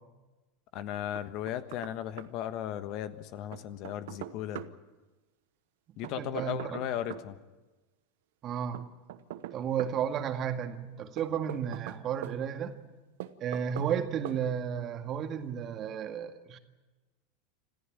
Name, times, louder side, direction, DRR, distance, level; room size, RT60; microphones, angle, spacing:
voice 1, 0.7-4.6 6.0-7.4, left 11 dB, 50° left, 12 dB, 1.3 m, -36 dB
Knock, 1.2-2.3 3.5-4.7 6.0-7.3 8.7-10.0 11.2-12.4 13.2-14.0 14.2-14.4, right 14 dB, 65° right, 1.0 m, -42 dB
voice 2, 6.0-6.8 8.4-8.8 9.5-12.7 13.4-16.6, right 8 dB, 40° right, 7 dB, 2.0 m, -33 dB
26.5 x 14.5 x 8.9 m, 1.2 s
hypercardioid pair, 90°, 0 cm